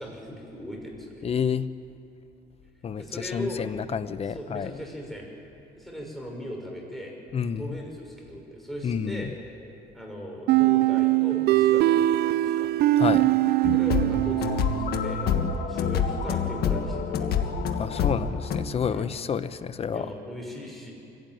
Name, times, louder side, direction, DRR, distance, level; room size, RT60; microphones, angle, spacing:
voice 1, 0.0-1.3 3.0-3.6 4.2-5.3 5.7-7.1 7.6-9.3 9.9-12.7 13.7-15.2 15.7-17.7 18.0-18.1 18.9-19.1 19.9-20.9, equal, ahead, -1 dB, 6.2 m, -38 dB
voice 2, 1.2-1.7 2.8-4.7 7.3-7.8 8.8-9.3 13.0-13.2 17.8-20.1, left 7 dB, 35° left, 13 dB, 0.9 m, -29 dB
sound 1, 10.5-15.1, right 15 dB, 75° right, 0.6 m, -22 dB
sound 2, 13.6-18.7, left 6 dB, 70° left, 1.7 m, -27 dB
24.5 x 17.0 x 9.3 m, 2.5 s
cardioid pair, 110°, 17 cm